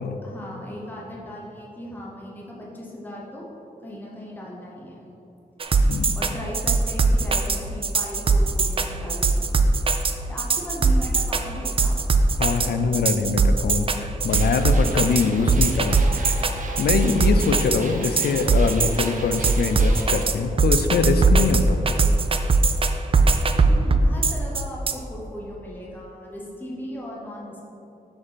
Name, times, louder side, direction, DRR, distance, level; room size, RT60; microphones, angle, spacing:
voice 1, 0.2-3.5 3.8-5.1 6.1-9.4 10.3-12.0 23.5-27.6, equal, 10° left, -4 dB, 0.9 m, -37 dB
sound 1, 5.6-24.9, right 4 dB, 35° right, 0.4 m, -20 dB
voice 2, 12.4-16.4 16.8-21.8, left 5 dB, 85° left, 8 dB, 0.5 m, -23 dB
sound 2, 14.3-20.2, right 2 dB, 55° right, 0.8 m, -38 dB
6.9 x 5.3 x 4.1 m, 3.0 s
wide cardioid pair, 125°, 16 cm